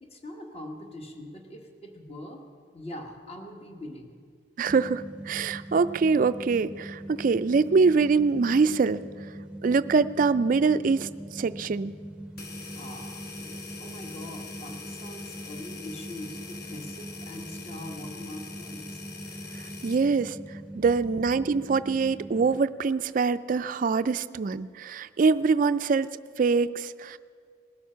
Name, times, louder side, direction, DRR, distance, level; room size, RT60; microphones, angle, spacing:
voice 1, 0.0-2.5 2.7-4.1 12.7-19.0, left 1 dB, 30° left, 3 dB, 1.4 m, -42 dB
voice 2, 4.6-9.0 9.6-11.9 19.8-20.4 20.7-26.1 26.4-27.2, right 4 dB, 45° right, 13 dB, 0.3 m, -24 dB
sound 1, 4.7-22.6, right 1 dB, 5° right, 0.7 m, -42 dB
sound 2, 12.4-20.1, left 4 dB, 55° left, 1.4 m, -43 dB
20.0 x 13.0 x 5.6 m, 2.2 s
head